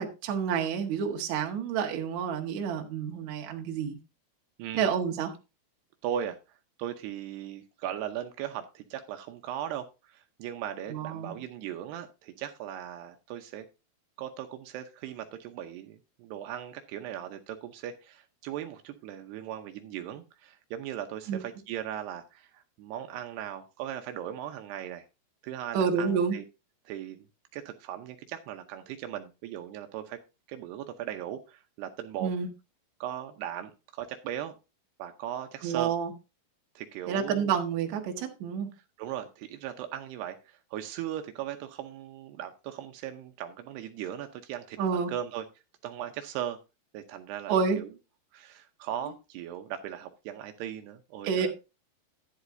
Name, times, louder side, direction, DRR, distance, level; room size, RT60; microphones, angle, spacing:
voice 1, 0.0-4.0 4.7-5.3 10.9-11.4 21.3-21.4 25.7-26.4 32.2-32.5 35.6-36.1 37.1-38.7 44.8-45.1 47.5-47.8 51.2-51.5, right 6 dB, 55° right, 3 dB, 2.2 m, -29 dB
voice 2, 4.6-5.0 6.0-6.4 6.8-13.7 14.2-25.0 25.4-26.4 26.9-27.3 27.5-30.2 30.5-32.3 33.0-34.6 35.0-35.9 36.8-37.5 39.0-45.5 45.8-46.6 46.9-47.9 48.3-51.5, right 10 dB, 80° right, 7 dB, 2.8 m, -38 dB
11.5 x 10.5 x 2.6 m, 0.28 s
omnidirectional pair, 4.9 m